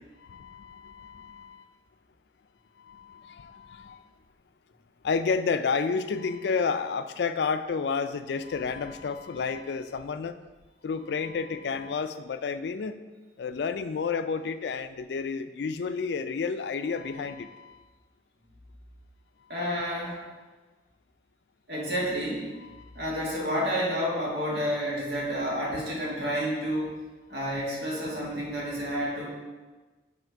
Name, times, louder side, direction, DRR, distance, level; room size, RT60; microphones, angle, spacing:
voice 1, 0.2-1.6 2.8-4.0 5.0-10.3 10.8-13.0 13.4-17.8 22.8-22.9 28.0-28.3, left 5 dB, 75° left, 11 dB, 0.3 m, -31 dB
voice 2, 19.5-20.2 21.7-22.5 23.0-27.0 27.3-29.3, equal, 70° right, -5 dB, 1.9 m, -30 dB
7.1 x 3.4 x 4.5 m, 1.3 s
head